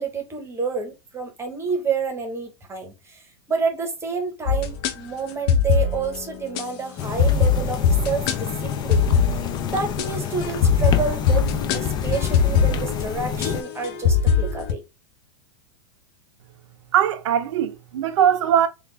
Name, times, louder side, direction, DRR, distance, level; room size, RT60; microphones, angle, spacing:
voice 1, 0.0-3.2 3.5-11.4 11.7-14.8, right 5 dB, 15° right, 1.0 m, -29 dB
sound 1, 4.5-4.9 5.5-6.2 6.5-6.6 7.2-14.7, left 6 dB, 55° left, 0.7 m, -22 dB
sound 2, 7.0-13.6, left 8 dB, 25° left, 0.4 m, -28 dB
voice 2, 16.9-18.7, right 9 dB, 75° right, 0.6 m, -20 dB
3.3 x 2.4 x 3.2 m
hypercardioid pair, 115°, 15 cm